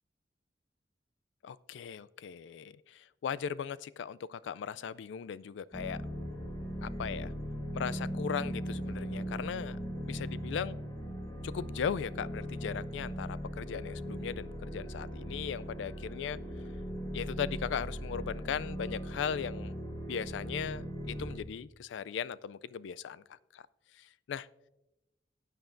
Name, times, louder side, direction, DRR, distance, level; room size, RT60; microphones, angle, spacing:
voice 1, 1.4-6.0 6.8-7.3 7.7-9.8 10.1-10.8 11.4-16.4 17.1-19.8 20.1-23.6 23.9-24.5, left 7 dB, 90° left, 18 dB, 0.3 m, -38 dB
sound 1, 5.7-21.4, equal, 25° left, 1.7 m, -39 dB
16.0 x 9.2 x 2.6 m, 0.94 s
head